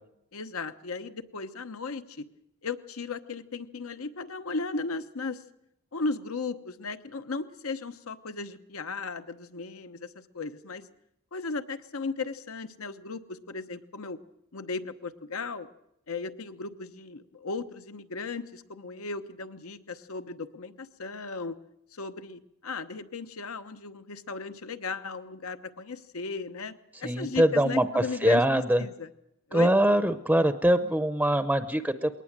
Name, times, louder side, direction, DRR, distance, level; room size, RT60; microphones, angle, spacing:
voice 1, 0.3-2.3 2.6-5.4 5.9-10.9 11.3-14.2 14.5-15.7 16.1-21.6 21.9-26.7 27.0-28.4 28.8-29.1 29.5-29.7, left 4 dB, 75° left, 10 dB, 1.0 m, -36 dB
voice 2, 27.0-28.8 29.5-32.2, right 1 dB, 5° right, 11 dB, 0.7 m, -23 dB
21.0 x 18.5 x 7.4 m, 0.81 s
head